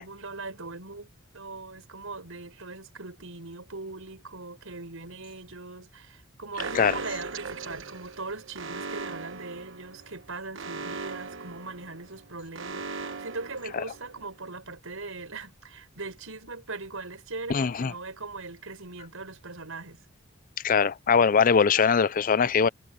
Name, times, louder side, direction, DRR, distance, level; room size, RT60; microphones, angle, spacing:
voice 1, 0.0-20.0, right 3 dB, 75° right, 5.0 m, -40 dB
Alarm, 6.6-14.3, right 4 dB, 60° right, 1.2 m, -39 dB
voice 2, 17.5-17.9 20.6-22.7, left 6 dB, 40° left, 0.4 m, -21 dB
head